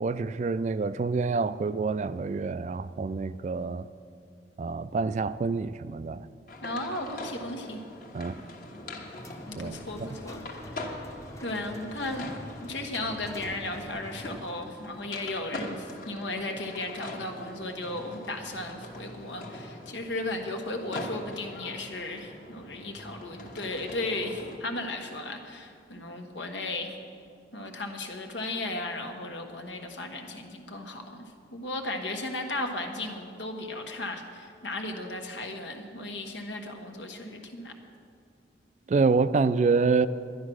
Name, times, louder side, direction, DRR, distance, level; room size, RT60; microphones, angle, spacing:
voice 1, 0.0-3.9 4.6-6.3 8.1-8.4 9.6-10.1 38.9-40.1, right 4 dB, 40° right, 0.3 m, -27 dB
sound 1, 6.5-24.6, left 1 dB, 45° left, 1.3 m, -42 dB
voice 2, 6.6-7.8 9.5-10.8 11.4-12.3 12.6-27.0 27.5-31.2 31.5-37.7, left 2 dB, 85° left, 1.4 m, -35 dB
sound 2, 9.1-14.6, left 1 dB, 15° left, 0.8 m, -46 dB
11.5 x 10.5 x 6.2 m
head